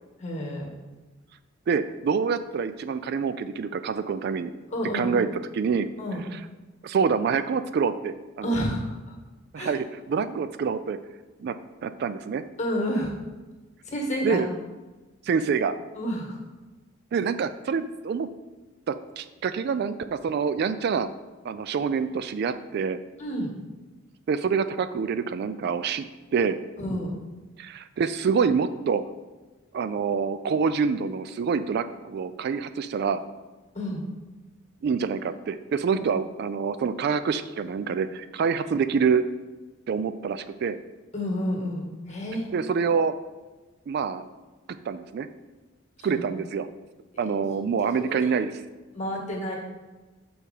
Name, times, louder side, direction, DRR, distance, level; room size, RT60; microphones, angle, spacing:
voice 1, 0.2-0.7 4.7-5.3 6.0-6.2 8.4-9.0 9.6-9.7 12.6-13.2 13.9-14.4 15.9-16.4 23.2-23.5 26.8-27.1 33.7-34.0 35.9-36.0 41.1-42.5 46.0-46.2 47.3-47.4 47.8-48.3 48.9-49.6, equal, 35° left, 0 dB, 1.6 m, -30 dB
voice 2, 1.7-4.5 4.9-5.9 6.8-8.6 9.5-11.0 11.4-11.6 11.8-12.4 14.2-14.5 15.2-15.7 17.1-18.3 18.9-21.1 21.4-23.0 24.3-26.0 26.3-26.6 27.6-29.0 29.7-33.2 34.8-39.2 39.9-40.8 42.5-43.1 43.9-44.2 44.9-45.3 46.0-46.7 47.2-48.5, right 6 dB, 55° right, 12 dB, 0.3 m, -26 dB
6.5 x 4.3 x 5.3 m, 1.2 s
head